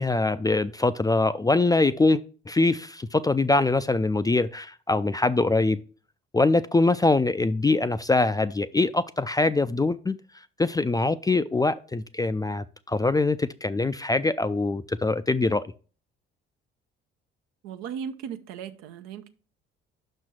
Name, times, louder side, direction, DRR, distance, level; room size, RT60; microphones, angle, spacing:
voice 1, 0.0-5.8 6.3-10.2 10.6-15.7, left 3 dB, 15° left, 0.4 m, -23 dB
voice 2, 17.6-19.3, right 7 dB, 70° right, 0.7 m, -37 dB
6.1 x 4.3 x 6.3 m
hypercardioid pair, 50°, 29 cm